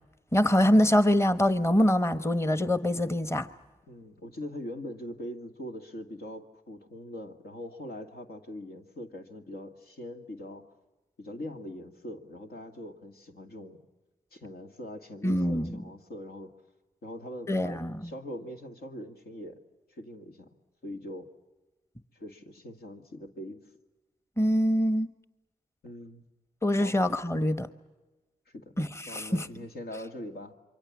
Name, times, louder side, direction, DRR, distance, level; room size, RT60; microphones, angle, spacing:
voice 1, 0.3-3.5 15.2-15.8 17.5-18.0 24.4-25.1 26.6-27.7 28.8-29.5, equal, 15° left, 1.4 m, -24 dB
voice 2, 3.9-10.6 11.2-13.8 14.3-16.5 17.0-19.6 19.9-20.5 20.8-21.3 22.1-23.6 25.8-26.2 26.8-27.0 28.5-28.7 29.1-30.5, left 1 dB, 80° left, 2.3 m, -42 dB
27.5 x 24.0 x 7.4 m
cardioid pair, 60°, 16 cm